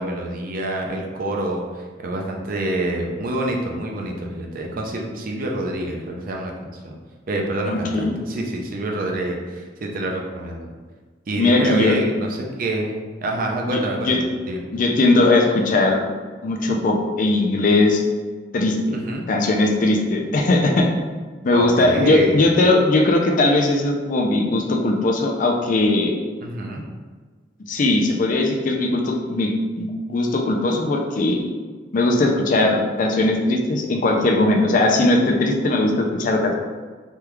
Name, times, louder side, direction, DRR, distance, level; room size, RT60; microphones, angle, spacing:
voice 1, 0.0-6.9 7.3-10.7 11.3-14.6 18.9-19.2 21.5-22.4 26.4-26.8, right 1 dB, 50° right, 1 dB, 0.5 m, -27 dB
voice 2, 7.7-8.2 11.4-12.0 13.6-13.8 14.0-14.2 14.7-16.0 16.4-18.0 18.5-19.0 19.3-20.9 21.4-26.1 27.7-31.4 31.9-36.5, left 2 dB, 45° left, 2 dB, 0.4 m, -19 dB
3.4 x 2.3 x 3.0 m, 1.4 s
head